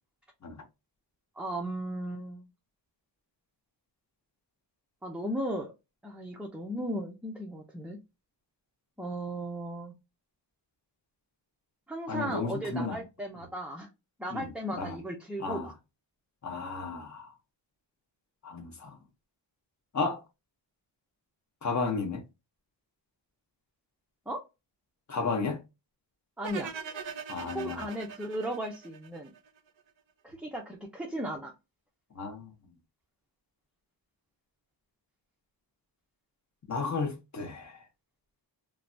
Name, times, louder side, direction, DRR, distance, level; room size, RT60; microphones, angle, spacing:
voice 1, 1.4-2.5 5.0-5.7 6.0-8.0 9.0-9.9 11.9-13.9 14.2-15.7 24.3-24.4 26.4-26.7 27.5-29.3 30.2-31.5, right 1 dB, 5° right, 0.4 m, -36 dB
voice 2, 12.1-13.0 14.3-14.5 14.8-15.0 15.4-15.7 16.4-17.3 18.4-19.0 19.9-20.2 21.6-22.2 25.1-25.6 27.3-27.8 32.1-32.5 36.7-37.8, left 4 dB, 40° left, 0.7 m, -33 dB
sound 1, 26.4-29.6, right 7 dB, 90° right, 0.6 m, -41 dB
3.2 x 2.2 x 2.5 m
wide cardioid pair, 135°, 45 cm